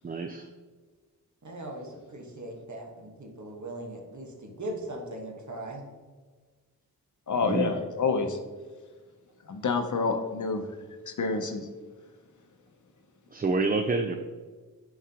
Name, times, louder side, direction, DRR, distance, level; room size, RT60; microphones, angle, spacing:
voice 1, 0.0-0.5 7.4-7.8 13.3-14.2, right 3 dB, 25° right, 7 dB, 0.4 m, -27 dB
voice 2, 1.4-5.8, right 1 dB, 50° right, 1 dB, 1.4 m, -39 dB
voice 3, 7.3-8.4 9.5-10.6 11.1-11.7, left 4 dB, 50° left, 6 dB, 0.8 m, -28 dB
7.4 x 4.8 x 2.9 m, 1.4 s
cardioid pair, 50°, 38 cm